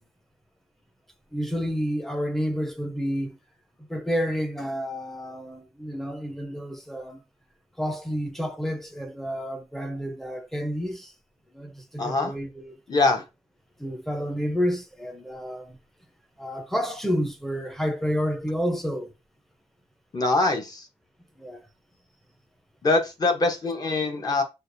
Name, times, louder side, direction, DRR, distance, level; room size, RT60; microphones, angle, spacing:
voice 1, 1.3-3.4 3.9-7.2 7.8-11.1 11.5-13.1 13.8-15.8 16.4-19.1 21.4-21.6, equal, ahead, 0.7 m, -30 dB
voice 2, 12.0-12.3 12.9-13.2 20.1-20.9 22.8-24.4, left 3 dB, 35° left, 1.0 m, -23 dB
6.3 x 2.4 x 2.6 m
wide cardioid pair, 160°, 12 cm